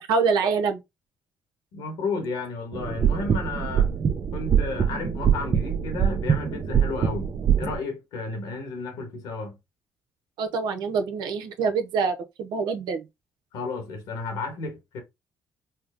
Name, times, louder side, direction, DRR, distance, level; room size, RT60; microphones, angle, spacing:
voice 1, 0.1-0.8 10.4-13.0, right 5 dB, 80° right, 0.7 m, -25 dB
voice 2, 1.7-3.9 4.3-7.3 7.6-9.6 13.5-15.0, left 3 dB, 80° left, 1.6 m, -32 dB
sound 1, 2.7-7.8, right 8 dB, 45° right, 0.8 m, -24 dB
4.4 x 2.1 x 3.5 m
supercardioid pair, 70°, 7 cm